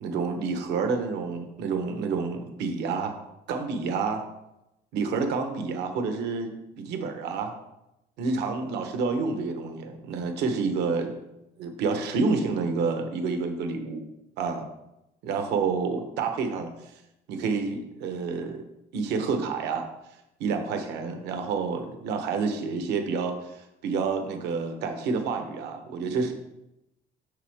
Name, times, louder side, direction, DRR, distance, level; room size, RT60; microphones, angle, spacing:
voice 1, 0.0-3.1 3.5-4.2 4.9-7.5 8.2-11.2 11.6-14.0 14.4-14.6 15.2-16.7 17.3-18.6 18.9-19.9 20.4-26.3, right 4 dB, 85° right, 6 dB, 1.1 m, -29 dB
8.2 x 6.2 x 3.5 m, 0.88 s
cardioid pair, 110°, 17 cm